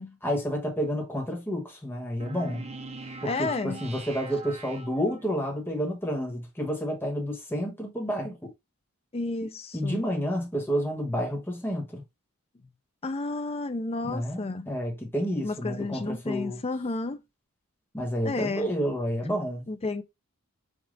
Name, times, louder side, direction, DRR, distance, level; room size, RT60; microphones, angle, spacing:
voice 1, 0.2-2.7 3.2-8.5 9.7-12.0 14.0-16.6 17.9-19.6, equal, 10° left, 1.3 m, -30 dB
sound 1, 2.2-5.5, right 3 dB, 30° right, 0.5 m, -42 dB
voice 2, 3.3-3.8 9.1-10.1 13.0-14.7 15.4-17.2 18.2-18.7 19.7-20.0, left 3 dB, 25° left, 0.5 m, -31 dB
5.3 x 2.4 x 3.7 m
head